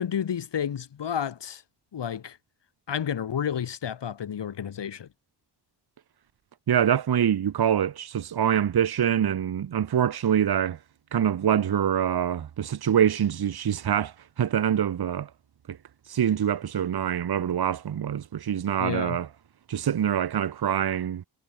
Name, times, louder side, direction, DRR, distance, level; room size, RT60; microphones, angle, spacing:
voice 1, 0.0-1.6 1.9-2.4 2.9-5.1 18.8-19.2, left 8 dB, 85° left, 5.1 m, -30 dB
voice 2, 6.7-10.8 11.1-15.3 15.7-15.8 16.1-19.3 19.7-21.2, right 9 dB, 65° right, 1.3 m, -25 dB
wide cardioid pair, 120°, 41 cm